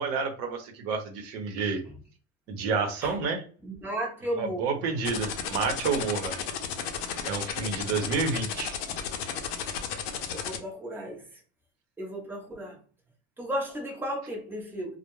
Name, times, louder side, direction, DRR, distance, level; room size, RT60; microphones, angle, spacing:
voice 1, 0.0-1.8 2.5-3.4 4.4-6.4 7.2-8.8, right 5 dB, 65° right, 0.8 m, -29 dB
voice 2, 3.6-4.9 10.3-11.3 12.0-12.8 13.4-15.0, equal, 5° right, 0.6 m, -34 dB
sound 1, 5.0-10.6, left 8 dB, 70° left, 0.6 m, -33 dB
2.2 x 2.1 x 3.0 m
cardioid pair, 160°, 32 cm